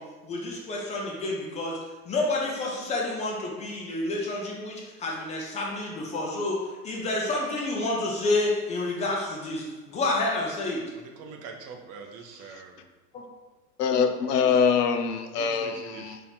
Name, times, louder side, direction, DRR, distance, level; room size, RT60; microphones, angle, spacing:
voice 1, 0.0-1.8 2.1-10.8 13.1-13.2, left 2 dB, 15° left, -2 dB, 0.4 m, -29 dB
voice 2, 10.9-12.8 15.3-16.1, right 4 dB, 30° right, 3 dB, 0.6 m, -43 dB
voice 3, 13.8-16.2, left 6 dB, 70° left, 7 dB, 0.6 m, -24 dB
4.1 x 2.7 x 4.0 m, 1.2 s
figure-of-eight pair, 90°, 49 cm